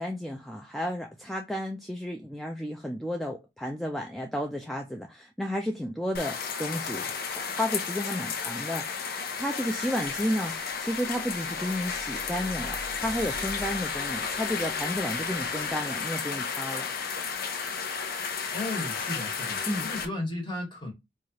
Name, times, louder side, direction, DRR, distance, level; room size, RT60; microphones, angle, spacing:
voice 1, 0.0-16.9 19.7-19.9, equal, ahead, 0.3 m, -32 dB
sound 1, 6.1-20.0, left 5 dB, 50° left, 0.6 m, -33 dB
sound 2, 10.0-15.8, right 1 dB, 20° right, 0.8 m, -46 dB
voice 2, 18.5-20.9, left 2 dB, 25° left, 1.4 m, -34 dB
4.6 x 2.4 x 2.8 m
head